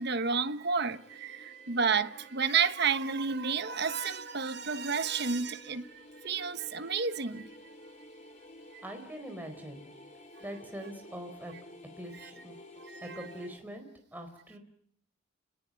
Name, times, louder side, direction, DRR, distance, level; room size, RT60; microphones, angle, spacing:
voice 1, 0.0-7.5 8.7-8.8 12.1-12.3 12.8-13.3, right 5 dB, 55° right, 1.2 m, -31 dB
sound 1, 0.9-13.6, left 1 dB, 35° left, 4.4 m, -52 dB
voice 2, 8.8-9.9 10.4-11.5 12.0-12.6 13.0-13.9 14.1-14.6, right 1 dB, 10° right, 4.4 m, -43 dB
30.0 x 20.5 x 9.0 m
head